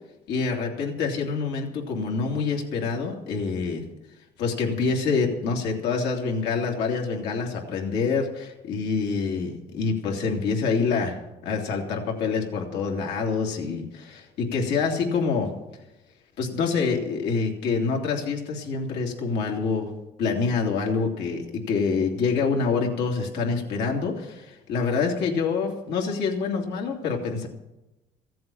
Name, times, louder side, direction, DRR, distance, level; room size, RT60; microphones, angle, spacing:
voice 1, 0.3-3.8 4.4-15.5 16.4-19.9 20.2-27.5, left 5 dB, 85° left, 0 dB, 2.8 m, -26 dB
15.5 x 7.7 x 8.6 m, 0.97 s
cardioid pair, 110°, 17 cm